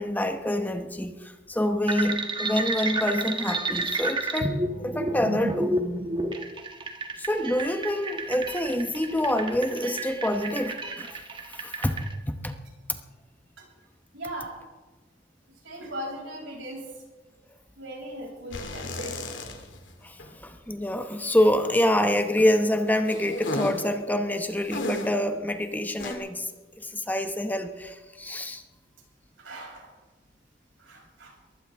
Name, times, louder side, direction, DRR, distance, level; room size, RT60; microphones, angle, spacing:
voice 1, 0.0-5.8 7.2-12.6 20.0-26.5 26.8-28.6, left 1 dB, 10° left, 7 dB, 0.9 m, -27 dB
sound 1, 1.9-12.1, right 2 dB, 25° right, 1.5 m, -31 dB
voice 2, 14.1-14.5 15.6-16.9 17.8-19.2 29.4-29.9 30.8-31.3, right 1 dB, 90° right, -1 dB, 6.3 m, -38 dB
sound 2, 18.5-19.9 20.2-20.3 23.1-23.9 24.6-25.2 26.0-26.1, left 1 dB, 75° left, 2.4 m, -33 dB
22.0 x 15.5 x 3.5 m, 1.2 s
head